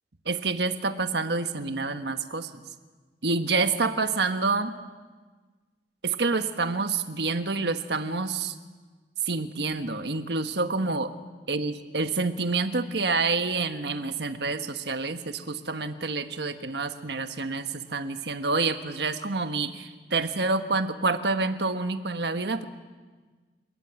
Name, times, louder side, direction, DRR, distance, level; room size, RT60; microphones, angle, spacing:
voice 1, 0.2-2.5 3.2-4.7 6.0-8.5 9.2-11.1 11.5-22.6, right 3 dB, 70° right, 8 dB, 1.5 m, -28 dB
29.5 x 15.0 x 9.5 m, 1.4 s
head